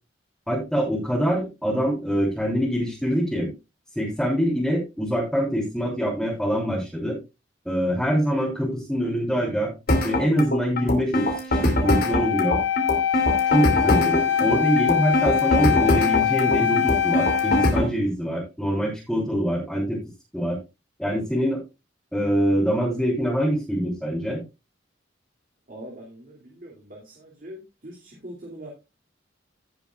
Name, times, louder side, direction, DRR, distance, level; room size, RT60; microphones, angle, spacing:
voice 1, 0.5-3.5 4.0-7.2 7.7-9.7 10.0-12.6 13.5-20.0 20.3-20.6 21.0-21.6 22.1-24.4, equal, ahead, -6 dB, 3.5 m, -24 dB
sound 1, 9.9-17.9, left 1 dB, 55° left, 2.7 m, -23 dB
Wind instrument woodwind instrument, 11.8-17.8, left 9 dB, 85° left, 1.0 m, -23 dB
voice 2, 25.7-28.7, right 1 dB, 50° right, -2 dB, 2.6 m, -42 dB
16.5 x 6.9 x 2.4 m, 0.25 s
head